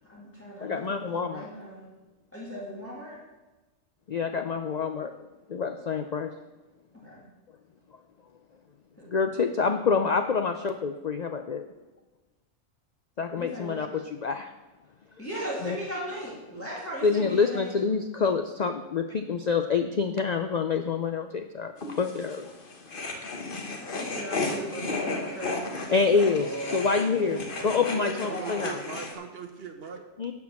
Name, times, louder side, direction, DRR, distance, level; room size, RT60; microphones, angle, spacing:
voice 1, 0.1-1.9 2.3-3.2 7.0-7.3 9.0-9.2 13.4-13.8 15.2-17.7 24.0-26.4 27.2-27.4 27.9-28.7, equal, 10° left, -6 dB, 2.1 m, -38 dB
voice 2, 0.6-1.5 4.1-5.1 5.5-6.3 9.1-11.6 13.2-14.5 15.6-15.8 17.0-21.7 22.0-22.5 22.9-23.1 25.9-28.8 30.2-30.3, left 5 dB, 65° left, 6 dB, 0.4 m, -27 dB
voice 3, 15.4-16.0 26.4-30.0, right 4 dB, 50° right, 5 dB, 1.3 m, -39 dB
sound 1, 21.8-29.1, left 2 dB, 45° left, 1.2 m, -34 dB
11.0 x 4.7 x 7.0 m, 1.1 s
omnidirectional pair, 1.4 m